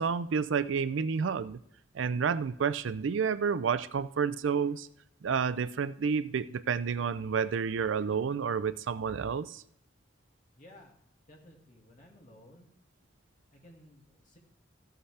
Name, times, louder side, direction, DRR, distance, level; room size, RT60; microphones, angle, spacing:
voice 1, 0.0-1.6 1.9-4.9 5.2-9.6, right 6 dB, 85° right, 15 dB, 0.4 m, -30 dB
voice 2, 10.6-10.9 11.3-12.7 13.5-14.4, left 1 dB, 40° left, 0 dB, 2.2 m, -55 dB
14.0 x 8.0 x 3.3 m, 0.71 s
head